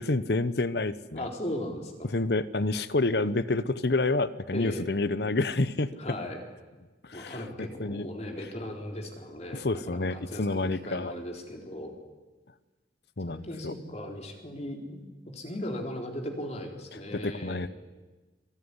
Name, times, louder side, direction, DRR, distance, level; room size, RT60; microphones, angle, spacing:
voice 1, 0.0-1.3 2.0-5.9 7.0-8.1 9.5-11.1 13.2-13.7 16.9-17.7, left 2 dB, 65° left, 16 dB, 1.0 m, -29 dB
voice 2, 1.1-2.1 4.5-4.9 6.0-6.4 7.1-11.9 13.3-15.1 15.3-17.7, left 1 dB, 40° left, 2 dB, 4.0 m, -37 dB
26.5 x 18.5 x 9.8 m, 1.2 s
head